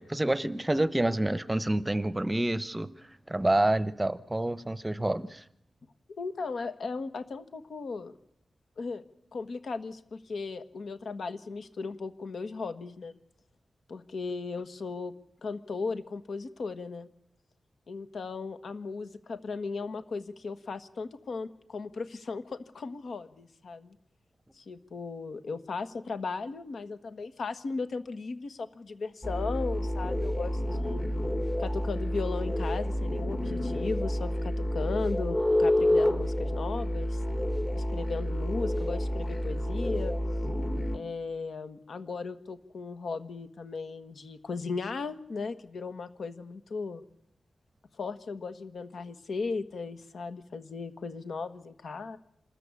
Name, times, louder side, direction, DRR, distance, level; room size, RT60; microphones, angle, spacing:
voice 1, 0.0-2.9 3.3-5.4, right 1 dB, 15° right, 15 dB, 0.8 m, -28 dB
voice 2, 6.2-8.2 8.8-9.0 9.3-13.2 13.9-15.1 15.4-17.1 17.9-23.9 24.5-31.0 31.6-37.2 37.7-40.2 40.9-47.0 48.0-52.2, left 4 dB, 75° left, 10 dB, 1.5 m, -36 dB
sound 1, 29.2-41.0, left 1 dB, 25° left, 1.5 m, -29 dB
26.5 x 14.0 x 8.4 m, 0.76 s
wide cardioid pair, 100°, 0 cm